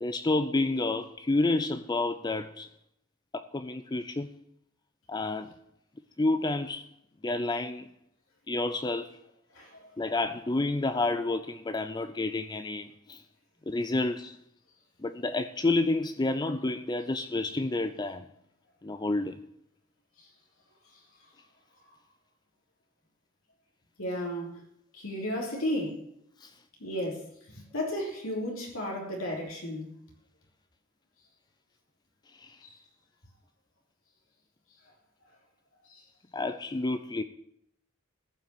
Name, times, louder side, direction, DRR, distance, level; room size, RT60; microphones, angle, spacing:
voice 1, 0.0-2.7 3.3-4.3 5.1-5.5 6.2-6.8 7.2-7.9 8.5-9.2 10.0-13.2 13.7-14.4 15.0-18.3 18.8-19.4 26.4-26.5 32.4-32.6 36.3-37.2, left 2 dB, 20° left, 0.5 m, -29 dB
voice 2, 9.5-9.9 24.0-24.6 24.9-26.0 26.8-27.3 27.6-29.9 35.9-36.0, left 1 dB, 85° left, 3.4 m, -33 dB
14.5 x 5.7 x 9.0 m
head